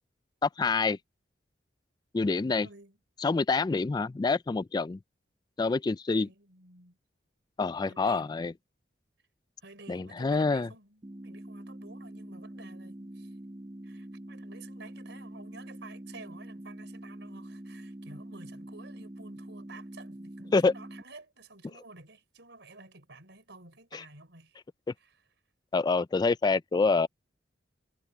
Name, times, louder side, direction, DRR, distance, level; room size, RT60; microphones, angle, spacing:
voice 1, 0.4-1.0 2.1-2.7 3.2-5.0 5.6-6.3 7.6-8.5 9.9-10.7 20.5-20.7 25.7-27.1, left 4 dB, 20° left, 0.3 m, -26 dB
voice 2, 2.6-3.0 6.1-7.0 7.8-8.4 9.6-13.4 13.8-24.6 25.0-25.3, right 3 dB, 70° right, 5.7 m, -52 dB
sound 1, 11.0-21.0, right 1 dB, 25° right, 1.0 m, -45 dB
head